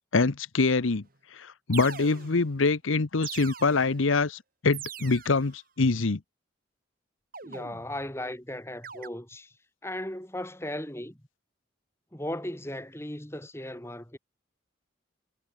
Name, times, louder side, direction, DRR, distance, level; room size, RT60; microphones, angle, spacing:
voice 1, 0.1-1.0 1.3-6.2, left 3 dB, 85° left, 0.9 m, -25 dB
sound 1, 1.1-1.2 1.7-2.6 3.2-4.1 4.7-5.5 7.3-8.1 8.8-9.1, right 8 dB, 45° right, 2.6 m, -42 dB
voice 2, 7.4-9.5 9.8-11.2 12.1-14.2, left 1 dB, 15° left, 2.5 m, -36 dB
head